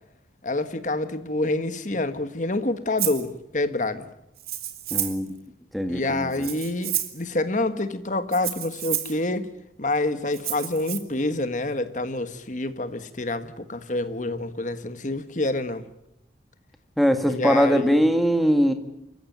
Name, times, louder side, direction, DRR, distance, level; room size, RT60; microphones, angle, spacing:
voice 1, 0.4-4.1 5.9-9.5 9.8-15.9 17.3-18.0, left 2 dB, 40° left, 11 dB, 1.5 m, -27 dB
Rattle (instrument), 3.0-3.3 4.4-5.3 6.3-7.2 8.3-9.2 10.3-11.0, right 13 dB, 55° right, 2.1 m, -30 dB
voice 2, 4.9-5.3 5.7-6.5 17.0-18.7, equal, ahead, 6 dB, 1.8 m, -21 dB
26.0 x 15.0 x 9.3 m, 0.85 s
head